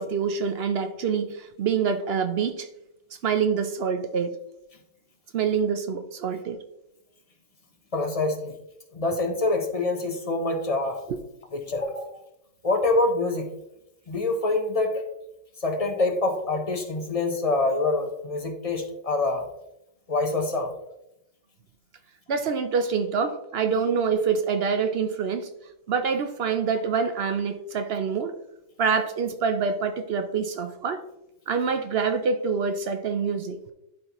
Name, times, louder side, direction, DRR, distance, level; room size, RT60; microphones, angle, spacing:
voice 1, 0.0-2.7 3.2-4.4 5.3-6.6 11.1-11.2 12.0-12.1 22.3-25.5 25.9-28.4 28.8-31.0 31.5-33.6, right 6 dB, 60° right, 8 dB, 0.7 m, -26 dB
voice 2, 7.9-8.5 8.9-11.0 11.5-12.1 12.6-13.5 14.1-15.0 15.6-19.4 20.1-20.7, left 2 dB, 35° left, 4 dB, 0.7 m, -25 dB
11.5 x 4.1 x 3.0 m, 0.86 s
omnidirectional pair, 1.4 m